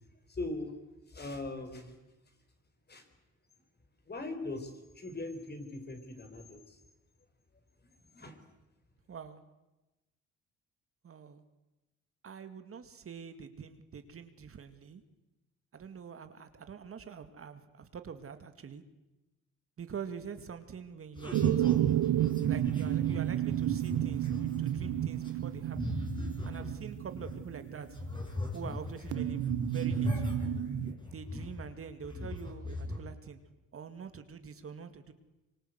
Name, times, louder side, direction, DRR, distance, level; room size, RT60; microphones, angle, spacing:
voice 1, 0.3-0.7 1.1-1.9 2.9-3.1 4.1-6.8 7.8-8.4, left 2 dB, 35° left, 7 dB, 4.9 m, -40 dB
voice 2, 9.1-9.4 11.0-11.4 12.2-15.0 15.7-18.8 19.8-21.8 22.5-26.0 26.5-28.0 28.5-30.3 31.1-33.4 33.7-35.1, right 6 dB, 50° right, 9 dB, 2.3 m, -45 dB
sound 1, 21.2-27.6 27.9-31.8 32.0-33.0, left 2 dB, 15° left, 6.1 m, -39 dB
sound 2, 21.3-28.2 29.1-30.9, right 13 dB, 80° right, 1.1 m, -31 dB
25.5 x 24.5 x 8.1 m, 1.0 s
cardioid pair, 90°, 30 cm